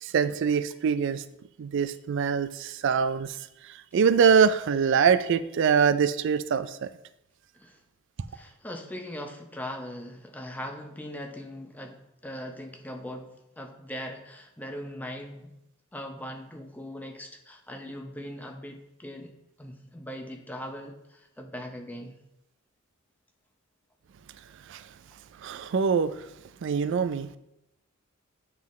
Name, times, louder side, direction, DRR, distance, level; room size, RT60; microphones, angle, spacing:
voice 1, 0.0-1.2 1.6-3.4 3.6-6.9 24.7-24.9 25.4-26.3 26.6-27.4, right 6 dB, 55° right, 13 dB, 0.3 m, -24 dB
voice 2, 8.3-15.5 15.9-19.3 19.6-22.2, left 1 dB, 5° left, 4 dB, 0.6 m, -40 dB
9.0 x 3.9 x 3.1 m, 0.86 s
head